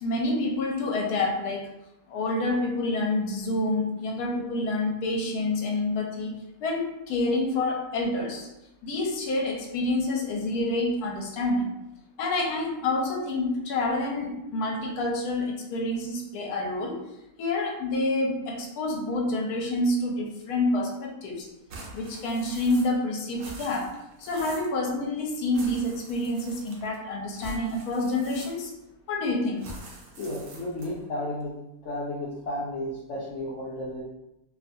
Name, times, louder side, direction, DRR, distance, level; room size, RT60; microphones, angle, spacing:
voice 1, 0.0-1.7 2.1-6.3 6.6-8.5 8.8-11.7 12.2-17.0 17.4-21.5 21.9-23.9 24.2-28.7 29.1-29.7, left 2 dB, 85° left, 0 dB, 1.1 m, -28 dB
Skittles Grab, 21.7-23.0 23.3-24.8 25.5-27.0 27.3-28.8 29.6-31.0, right 2 dB, 70° right, 1.0 m, -45 dB
voice 2, 30.2-31.5 31.8-34.0, left 1 dB, 65° left, -7 dB, 0.8 m, -33 dB
2.6 x 2.4 x 2.5 m, 0.90 s
omnidirectional pair, 1.6 m